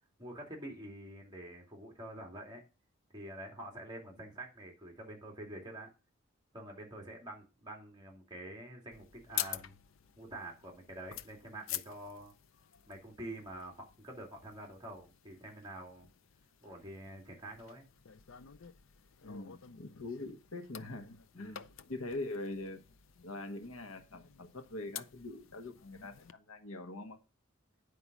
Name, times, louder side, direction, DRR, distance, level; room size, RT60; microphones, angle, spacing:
voice 1, 0.2-2.6 3.1-5.9 6.5-9.7 10.2-12.3 12.9-16.1 16.6-17.9 21.3-21.7, right 1 dB, 20° right, 2.4 m, -47 dB
sound 1, 8.9-26.3, left 12 dB, 70° left, 0.5 m, -48 dB
voice 2, 19.2-21.6 21.9-22.8 23.2-27.2, left 2 dB, 90° left, 1.2 m, -43 dB
9.5 x 5.1 x 6.0 m
head